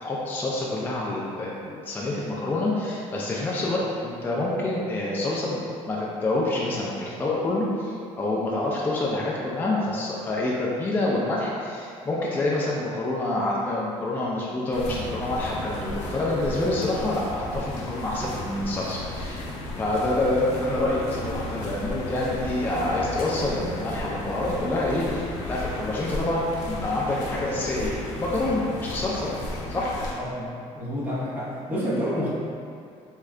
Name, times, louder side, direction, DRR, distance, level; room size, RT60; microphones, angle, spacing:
voice 1, 0.0-5.6 5.9-19.5 19.8-29.3 29.7-29.9, left 2 dB, 15° left, -5 dB, 0.3 m, -27 dB
sound 1, 14.7-30.1, left 1 dB, 90° left, 0.6 m, -34 dB
voice 2, 30.2-30.5 30.7-32.3, equal, 15° right, -9 dB, 0.9 m, -28 dB
3.6 x 2.3 x 3.2 m, 2.4 s
cardioid pair, 150°, 12 cm